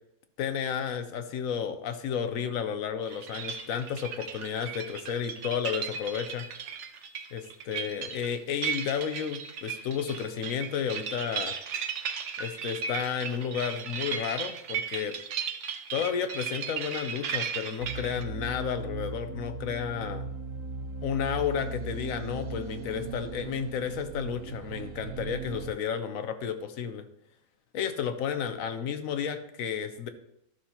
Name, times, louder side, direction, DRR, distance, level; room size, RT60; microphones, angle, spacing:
voice 1, 0.4-6.5 7.3-11.5 12.4-15.1 15.9-20.3 21.0-27.0 27.7-30.1, left 7 dB, 70° left, 9 dB, 1.1 m, -32 dB
sound 1, 3.0-18.2, right 7 dB, 60° right, 0.9 m, -36 dB
sound 2, 17.8-25.7, right 4 dB, 85° right, 1.3 m, -38 dB
13.0 x 6.0 x 2.9 m, 0.79 s
omnidirectional pair, 1.6 m